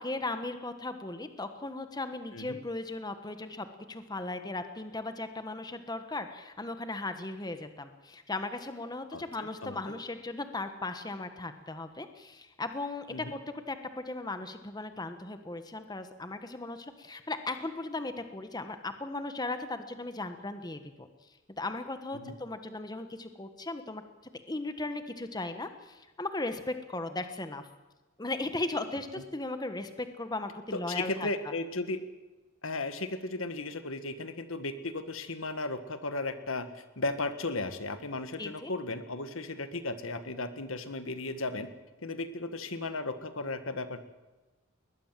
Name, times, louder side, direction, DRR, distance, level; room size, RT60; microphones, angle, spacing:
voice 1, 0.0-13.4 13.7-21.1 21.6-24.0 24.5-27.7 28.2-31.3 38.4-38.7, left 2 dB, 20° left, 8 dB, 1.3 m, -37 dB
voice 2, 9.1-9.8 13.1-13.3 22.1-22.4 30.7-32.0 32.6-41.7 42.0-44.0, left 2 dB, 70° left, 10 dB, 1.7 m, -35 dB
21.5 x 20.0 x 7.5 m, 1.1 s
head